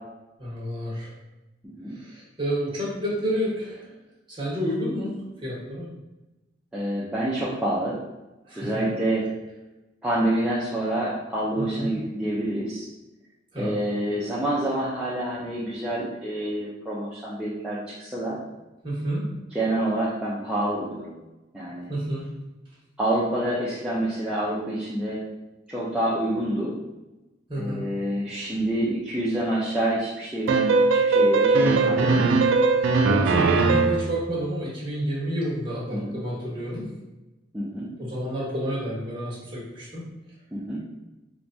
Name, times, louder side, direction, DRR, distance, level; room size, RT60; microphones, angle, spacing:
voice 1, 0.4-1.1 1.9-3.9 4.3-5.9 8.5-8.9 11.6-11.9 13.5-13.7 18.8-19.3 21.9-22.2 27.5-27.8 31.7-32.4 32.7-36.9 38.0-40.0, equal, 25° right, -6 dB, 1.1 m, -30 dB
voice 2, 1.6-2.0 6.7-8.0 8.6-9.2 10.0-12.9 13.6-18.4 19.5-21.2 21.5-21.9 23.0-25.2 25.7-26.7 27.6-32.0 33.0-33.4 35.9-36.2 37.5-37.9 40.5-40.8, right 1 dB, 5° right, -9 dB, 0.4 m, -27 dB
sound 1, 30.5-34.1, right 3 dB, 75° right, 0.3 m, -20 dB
4.5 x 2.2 x 2.6 m, 1.0 s
head